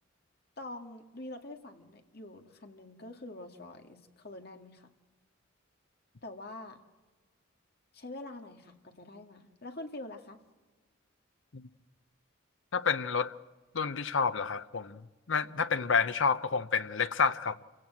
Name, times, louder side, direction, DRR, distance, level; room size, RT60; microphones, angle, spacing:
voice 1, 0.6-4.9 6.2-6.8 7.9-10.4, left 2 dB, 50° left, 2.1 m, -45 dB
voice 2, 12.7-13.3 13.7-15.0 15.3-17.6, left 5 dB, 70° left, 0.8 m, -29 dB
27.0 x 17.0 x 7.7 m
head